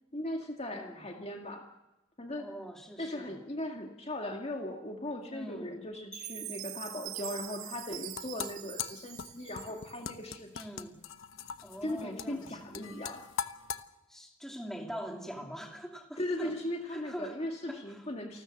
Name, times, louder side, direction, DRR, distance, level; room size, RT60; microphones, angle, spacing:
voice 1, 0.1-1.7 2.2-2.5 3.0-10.7 11.8-13.3 16.2-18.4, left 1 dB, 30° left, 3 dB, 2.0 m, -38 dB
voice 2, 0.7-1.0 2.4-3.3 5.3-5.7 10.5-11.0 11.6-12.6 14.1-16.6 16.9-17.4 17.7-18.1, equal, ahead, 2 dB, 2.5 m, -43 dB
Chime, 6.1-10.3, right 13 dB, 90° right, 1.8 m, -44 dB
sound 1, 7.8-13.8, left 7 dB, 75° left, 1.1 m, -41 dB
28.5 x 13.0 x 7.8 m, 1.0 s
head